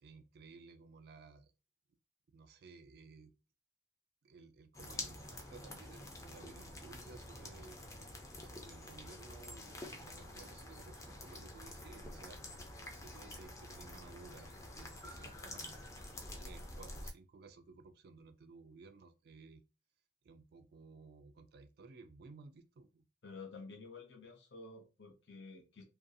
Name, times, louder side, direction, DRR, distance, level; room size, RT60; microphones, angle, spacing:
voice 1, 0.0-1.5 2.3-3.3 4.2-8.1 8.4-12.4 12.9-15.8 16.4-19.6 20.2-23.1, right 4 dB, 55° right, 0.3 m, -57 dB
sound 1, 4.7-17.1, left 1 dB, 15° left, 0.4 m, -48 dB
voice 2, 23.2-25.8, left 4 dB, 65° left, 0.5 m, -51 dB
2.5 x 2.3 x 2.6 m
head